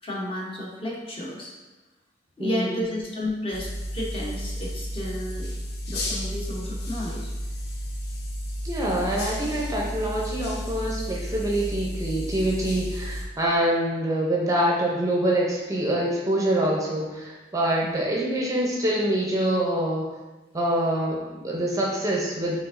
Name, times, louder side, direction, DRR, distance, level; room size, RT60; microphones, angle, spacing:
voice 1, 0.0-1.5 2.4-5.5 5.9-7.3 17.8-18.0, left 1 dB, 30° left, -3 dB, 0.8 m, -32 dB
voice 2, 2.4-2.8 8.6-20.1 20.5-22.6, right 1 dB, 20° right, -3 dB, 0.6 m, -25 dB
sound 1, 3.5-13.2, equal, 60° left, 0.7 m, -32 dB
4.9 x 3.4 x 2.5 m, 1.1 s
head